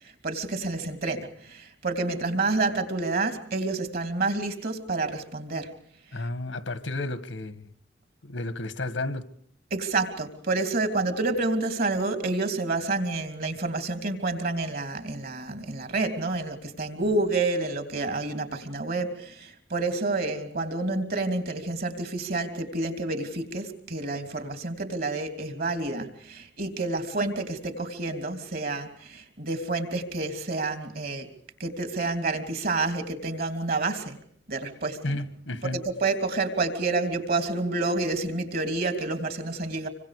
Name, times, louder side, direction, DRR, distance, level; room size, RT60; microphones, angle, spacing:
voice 1, 0.2-5.7 9.7-31.3 31.6-34.2 34.5-35.2 35.6-39.9, right 3 dB, 50° right, 3.1 m, -29 dB
voice 2, 6.1-7.7 8.2-9.3 35.0-35.8, left 2 dB, 80° left, 1.8 m, -32 dB
26.5 x 25.0 x 5.0 m
head